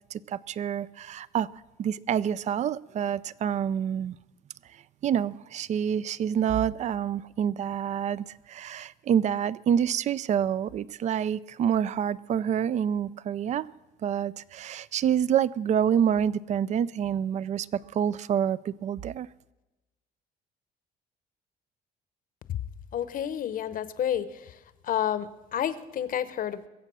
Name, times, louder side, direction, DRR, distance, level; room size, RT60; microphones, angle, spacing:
voice 1, 0.1-1.5 1.8-4.2 5.0-13.7 14.0-19.3, right 9 dB, 45° right, 19 dB, 0.4 m, -27 dB
voice 2, 22.9-24.6 24.8-26.7, left 10 dB, 55° left, 15 dB, 0.9 m, -30 dB
22.5 x 7.6 x 6.2 m, 1.0 s
cardioid pair, 110°, 17 cm